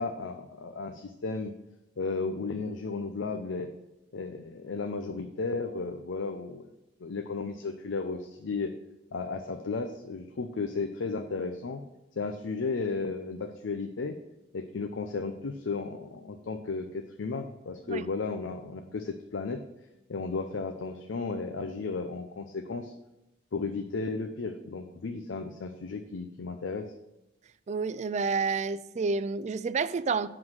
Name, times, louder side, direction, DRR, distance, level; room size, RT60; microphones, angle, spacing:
voice 1, 0.0-1.5 2.0-3.7 4.1-6.7 7.0-8.7 9.1-11.8 12.2-14.2 14.5-19.6 20.1-22.9 23.5-26.9, left 4 dB, 90° left, 0.6 m, -34 dB
voice 2, 27.7-30.3, right 4 dB, 40° right, 0.3 m, -29 dB
9.7 x 3.9 x 6.3 m
head